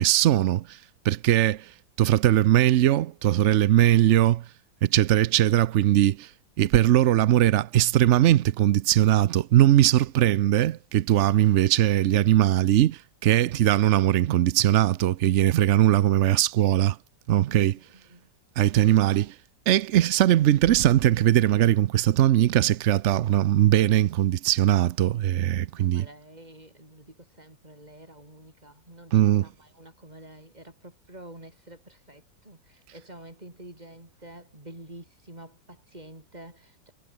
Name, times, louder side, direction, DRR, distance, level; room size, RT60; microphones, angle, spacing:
voice 1, 0.0-4.5 4.8-6.3 6.6-17.0 17.3-17.8 18.6-19.4 19.7-26.1 29.1-29.5, right 12 dB, 80° right, 0.6 m, -20 dB
voice 2, 25.8-36.9, right 1 dB, 20° right, 5.7 m, -48 dB
omnidirectional pair, 1.9 m